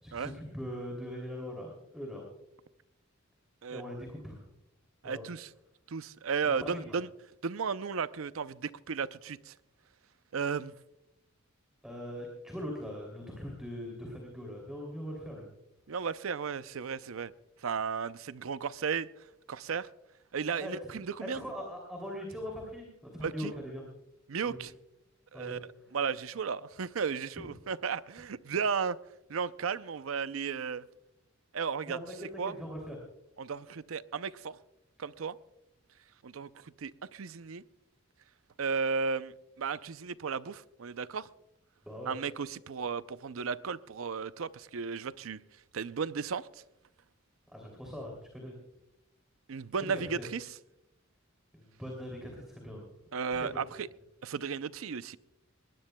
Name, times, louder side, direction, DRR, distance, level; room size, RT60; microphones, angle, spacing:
voice 1, 0.0-2.2 3.7-4.4 5.0-5.2 6.4-7.0 11.8-15.5 20.6-21.0 21.3-23.9 24.5-24.6 25.3-25.6 27.4-27.5 31.9-33.0 41.8-42.2 47.5-48.6 49.8-50.3 51.5-52.8 53.3-53.5, equal, ahead, 2.8 m, -41 dB
voice 2, 5.0-5.5 5.9-7.1 7.4-9.5 10.3-10.7 15.9-17.3 17.6-19.1 19.5-19.9 20.3-21.4 23.2-23.5 24.3-24.7 25.3-25.6 25.9-29.0 29.3-30.8 31.5-32.0 32.4-32.5 33.4-34.6 35.0-35.4 36.2-37.6 38.6-41.3 42.1-45.4 45.7-46.5 49.5-50.4 53.1-53.9 54.2-55.2, right 6 dB, 80° right, 0.5 m, -34 dB
20.5 x 19.5 x 2.2 m
head